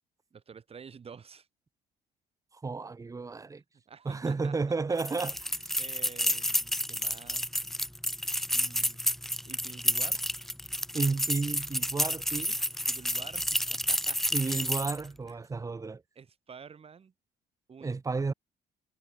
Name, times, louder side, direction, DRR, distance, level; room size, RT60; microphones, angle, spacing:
voice 1, 0.3-1.5 3.7-4.6 5.2-5.3 5.8-7.5 8.5-9.0 9.5-10.2 12.9-14.2 15.3-15.4 16.2-17.1 17.7-18.0, right 6 dB, 35° right, 5.5 m, -49 dB
voice 2, 2.5-3.6 4.0-5.5 10.9-12.5 14.3-16.0 17.8-18.3, right 4 dB, 20° right, 1.2 m, -32 dB
sound 1, 5.0-15.1, equal, ahead, 1.0 m, -30 dB
cardioid pair, 110°, 17 cm